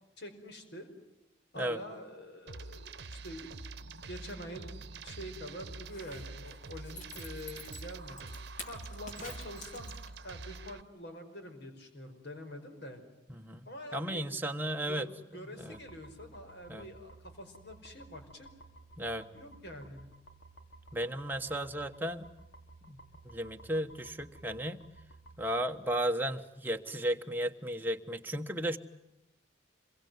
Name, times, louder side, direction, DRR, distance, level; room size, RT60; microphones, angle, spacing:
voice 1, 0.2-0.9 1.5-3.6 4.1-4.7 5.0-8.3 8.7-13.0 13.6-14.3 14.8-18.5 19.3-20.0, equal, 55° left, 7 dB, 5.0 m, -46 dB
sound 1, 2.5-10.8, right 3 dB, 55° right, 1.1 m, -46 dB
Zipper (clothing), 5.7-10.3 10.7-10.8, left 2 dB, 40° left, 4.7 m, -49 dB
voice 2, 13.4-13.7 13.9-15.1 15.6-15.8 16.7-16.9 19.0-19.3 20.9-22.3 22.9-23.0 23.2-24.8 25.4-28.8, right 1 dB, 10° right, 4 dB, 1.3 m, -34 dB
sound 2, 15.7-25.4, right 2 dB, 80° left, 3.2 m, -55 dB
27.0 x 23.0 x 9.4 m, 0.93 s
head